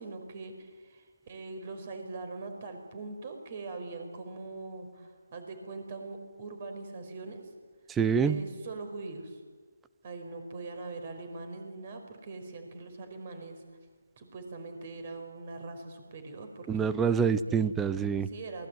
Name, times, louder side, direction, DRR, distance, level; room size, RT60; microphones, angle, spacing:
voice 1, 0.0-7.5 8.2-9.4 10.0-13.6 14.2-16.9 17.5-17.6 18.3-18.7, right 3 dB, 35° right, 6 dB, 5.2 m, -42 dB
voice 2, 7.9-8.4 16.7-18.3, right 6 dB, 10° right, 14 dB, 0.7 m, -26 dB
27.5 x 20.5 x 9.3 m, 1.5 s
figure-of-eight pair, 160°, 0 cm